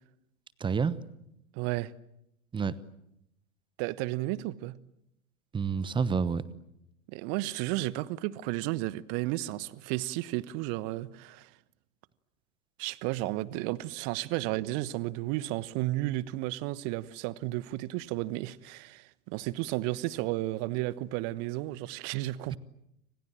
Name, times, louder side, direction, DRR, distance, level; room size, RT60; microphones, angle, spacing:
voice 1, 0.6-1.0 2.5-2.8 5.5-6.4 22.5-22.6, right 5 dB, 10° right, 1.0 m, -28 dB
voice 2, 1.5-1.9 3.8-4.8 7.1-11.5 12.8-22.6, right 17 dB, 35° right, 1.1 m, -33 dB
29.5 x 26.0 x 7.6 m
figure-of-eight pair, 95°, 40 cm